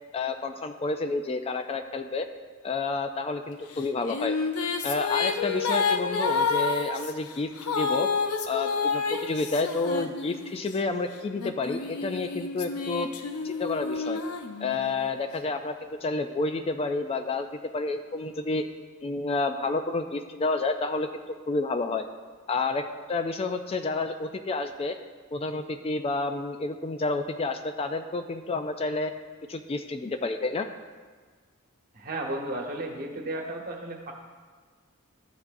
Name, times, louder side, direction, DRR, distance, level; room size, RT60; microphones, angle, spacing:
voice 1, 0.1-2.3 2.6-4.4 4.8-8.1 8.5-13.1 13.4-14.2 14.6-17.5 17.7-18.6 19.0-21.1 21.5-22.1 22.5-25.0 25.3-29.1 29.5-30.7, left 3 dB, 25° left, 8 dB, 0.3 m, -30 dB
sound 1, 3.8-10.7 11.4-15.1, left 5 dB, 85° left, 0.6 m, -29 dB
voice 2, 31.9-34.1, right 1 dB, 45° right, 1 dB, 1.1 m, -34 dB
13.0 x 7.1 x 2.6 m, 1.5 s
head